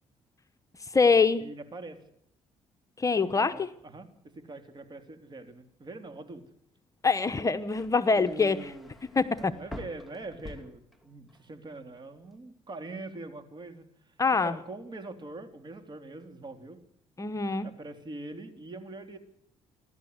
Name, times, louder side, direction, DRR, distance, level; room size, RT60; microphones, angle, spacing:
voice 1, 0.8-1.4 3.0-3.7 7.0-8.7 9.1-9.5 14.2-14.6 17.2-17.7, left 4 dB, 25° left, 10 dB, 1.0 m, -24 dB
voice 2, 1.4-2.0 3.1-6.4 8.2-8.9 9.3-16.8 17.6-19.2, right 2 dB, 40° right, 8 dB, 3.4 m, -43 dB
sound 1, 7.3-11.4 11.8-12.3, left 2 dB, ahead, 2.8 m, -48 dB
28.0 x 12.0 x 8.1 m, 0.74 s
cardioid pair, 80°, 12 cm